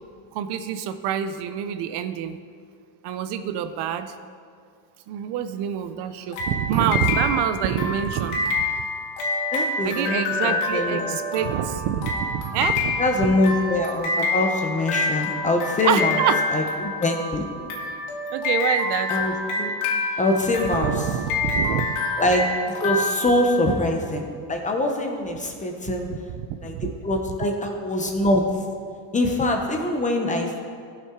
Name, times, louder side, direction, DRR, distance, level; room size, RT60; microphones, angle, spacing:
voice 1, 0.3-2.4 3.0-4.1 5.1-8.4 9.8-13.0 15.8-16.4 18.3-19.2 20.8-22.0 25.9-26.2 26.7-26.9, right 9 dB, 55° right, 10 dB, 0.5 m, -26 dB
sound 1, 6.3-24.0, left 3 dB, 85° left, 2.0 m, -27 dB
voice 2, 9.5-11.2 13.0-16.2 16.5-17.5 19.1-19.7 20.2-21.1 22.2-22.5 22.8-26.1 26.6-26.8 27.0-28.4 29.1-30.6, left 1 dB, 15° left, 3 dB, 0.6 m, -23 dB
16.5 x 5.7 x 3.6 m, 2.2 s
cardioid pair, 165°, 48 cm